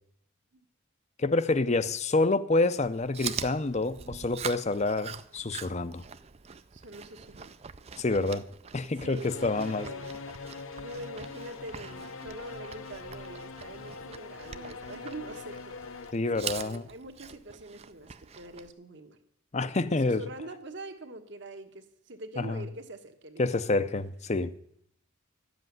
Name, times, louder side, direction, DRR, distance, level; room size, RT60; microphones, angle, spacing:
voice 1, 1.2-6.0 8.0-8.4 8.7-9.9 16.1-16.8 19.5-20.2 22.4-22.6 23.4-24.5, left 3 dB, 30° left, 0.5 m, -27 dB
Chewing mastication, 2.8-18.7, right 7 dB, 30° right, 0.4 m, -43 dB
voice 2, 6.7-7.5 9.0-10.2 10.8-16.1 16.3-19.2 19.9-23.5, right 1 dB, 55° right, 1.3 m, -44 dB
sound 1, 9.2-16.1, left 4 dB, 75° left, 0.8 m, -43 dB
12.5 x 7.8 x 9.3 m
head